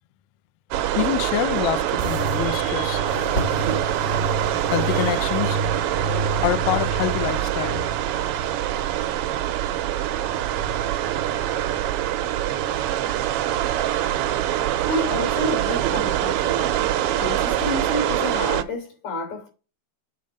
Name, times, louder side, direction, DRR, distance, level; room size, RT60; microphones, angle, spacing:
sound 1, 0.7-18.6, right 12 dB, 80° right, 1.3 m, -24 dB
voice 1, 1.0-3.1 4.7-5.6 6.4-7.8, left 15 dB, 85° left, 1.4 m, -26 dB
sound 2, 2.0-12.6, right 2 dB, 65° right, 0.9 m, -32 dB
sound 3, 3.1-6.5 6.7-7.6 8.4-8.5, left 1 dB, 45° left, 1.5 m, -36 dB
voice 2, 14.8-16.8 17.2-19.5, left 2 dB, 65° left, 4.4 m, -29 dB
8.7 x 4.1 x 5.2 m
omnidirectional pair, 3.3 m